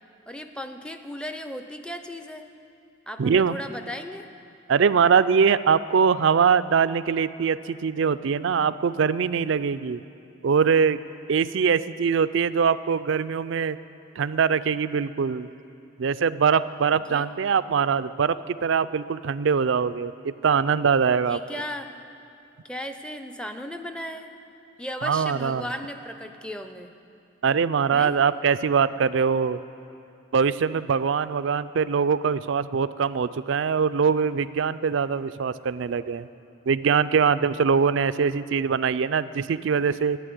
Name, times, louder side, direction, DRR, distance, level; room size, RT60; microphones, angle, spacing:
voice 1, 0.3-2.4 3.1-4.3 16.9-17.3 21.2-21.9 22.6-24.3 24.8-27.0 27.9-28.1, equal, 5° left, 7 dB, 0.5 m, -36 dB
voice 2, 3.2-3.6 4.7-10.0 10.4-11.0 11.3-13.8 14.2-15.5 16.0-21.4 25.0-25.6 27.4-29.6 30.3-36.3 36.7-40.2, right 6 dB, 65° right, 15 dB, 0.4 m, -22 dB
12.5 x 9.0 x 9.4 m, 2.6 s
head